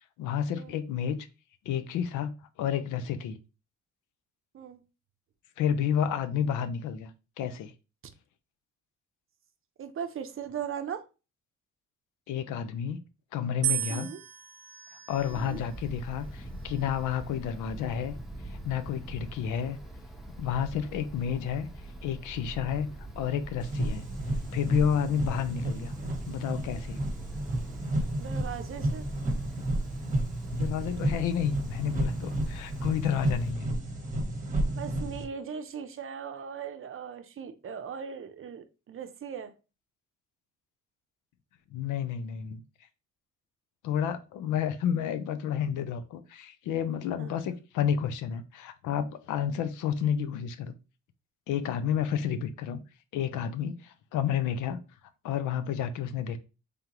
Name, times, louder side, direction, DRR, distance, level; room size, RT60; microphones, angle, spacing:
voice 1, 0.2-1.2 1.7-3.4 5.6-7.1 7.4-7.7 12.3-13.0 13.3-14.1 15.1-18.2 18.4-19.8 20.4-21.7 22.0-22.9 23.2-24.1 24.5-25.9 26.3-27.0 30.5-33.7 41.7-42.6 43.8-50.7 51.5-52.8 53.1-54.8 55.2-56.4, left 8 dB, 90° left, 0.6 m, -30 dB
voice 2, 9.8-11.0 13.9-14.2 15.3-15.6 28.2-29.1 34.8-39.5 47.2-47.3, right 7 dB, 45° right, 0.6 m, -38 dB
sound 1, 13.6-15.8 16.6-17.2, right 13 dB, 90° right, 0.5 m, -35 dB
Wind, 15.1-33.5, right 1 dB, ahead, 0.8 m, -43 dB
sound 2, 23.6-35.2, right 1 dB, 25° right, 1.0 m, -32 dB
3.7 x 3.4 x 2.9 m
cardioid pair, 90°, 30 cm